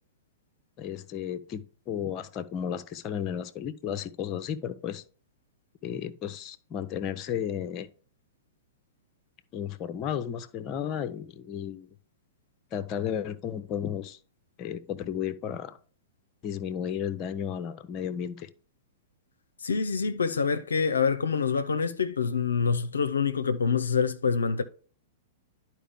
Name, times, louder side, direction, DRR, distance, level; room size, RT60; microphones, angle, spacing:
voice 1, 0.8-5.0 5.8-7.9 9.5-11.9 12.7-14.2 14.6-15.8 16.4-18.5, left 9 dB, 30° left, 0.7 m, -33 dB
voice 2, 19.6-24.6, left 5 dB, 70° left, 0.6 m, -26 dB
11.0 x 4.5 x 3.5 m
figure-of-eight pair, 100°, 0 cm